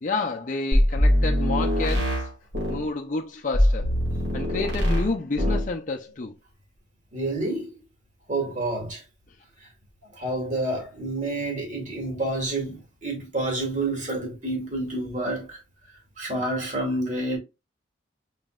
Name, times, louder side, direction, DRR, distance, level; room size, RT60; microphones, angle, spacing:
voice 1, 0.0-2.3 2.7-4.0 4.3-6.4 9.3-9.4 12.0-12.2, left 3 dB, 40° left, 0.6 m, -30 dB
sound 1, 0.7-2.9 3.5-5.1 5.4-5.7, equal, 65° right, 2.2 m, -22 dB
voice 2, 7.1-7.7 8.3-9.0 9.6-9.7 10.1-15.6 16.2-17.4, right 2 dB, 40° right, 2.1 m, -29 dB
5.2 x 3.9 x 2.3 m
head